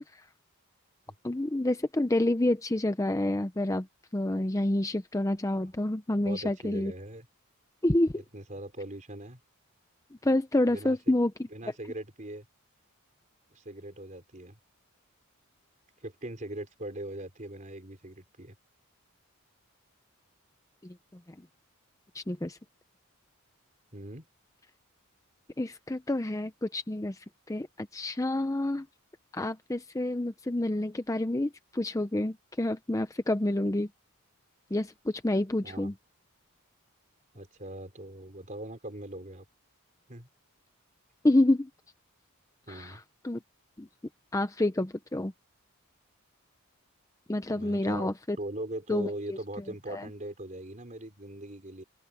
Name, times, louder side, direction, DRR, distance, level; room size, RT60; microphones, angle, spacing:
voice 1, 1.2-3.9 4.1-6.9 7.8-8.2 10.2-11.3 20.8-21.0 22.1-22.6 25.6-28.9 29.3-33.9 34.7-35.9 41.2-41.7 42.7-43.4 43.8-43.9 44.3-45.3 47.3-48.4 48.9-49.4 49.9-50.1, left 1 dB, 15° left, 0.6 m, -28 dB
voice 2, 6.2-7.3 8.1-9.4 10.7-11.1 11.5-12.5 13.5-14.6 16.0-18.6 23.9-24.3 35.6-35.9 37.3-39.4 40.1-40.3 42.7-43.0 47.5-48.1 48.4-51.8, right 1 dB, 35° right, 4.0 m, -40 dB
open air
head